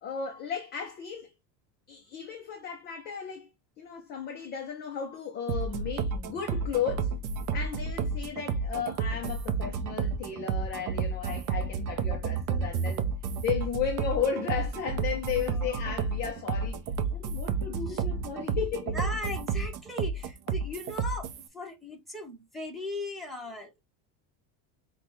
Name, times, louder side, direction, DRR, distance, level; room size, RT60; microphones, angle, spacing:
voice 1, 0.0-1.3 1.9-3.5 3.8-7.1 7.5-13.1 13.4-16.8 17.1-19.0, left 7 dB, 25° left, 0.3 m, -34 dB
sound 1, 5.5-21.5, right 5 dB, 40° right, 0.5 m, -31 dB
voice 2, 18.9-23.8, left 2 dB, ahead, 0.8 m, -38 dB
5.1 x 2.2 x 2.9 m
cardioid pair, 155°, 50 cm